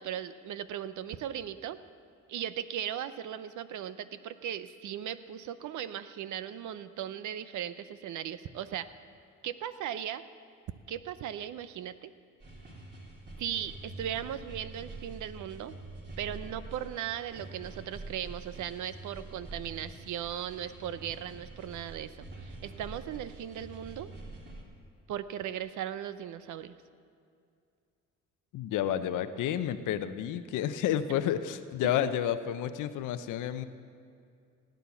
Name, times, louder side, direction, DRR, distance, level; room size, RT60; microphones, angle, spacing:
voice 1, 0.0-1.8 2.3-8.9 9.4-10.2 10.9-12.1 13.4-15.7 16.2-24.1 25.1-26.8, right 10 dB, 75° right, 13 dB, 0.7 m, -37 dB
sound 1, 12.4-24.6, right 2 dB, 35° right, 3.2 m, -46 dB
voice 2, 28.5-33.6, left 10 dB, 85° left, 11 dB, 0.7 m, -30 dB
17.0 x 9.2 x 7.1 m, 2.4 s
cardioid pair, 90°, 30 cm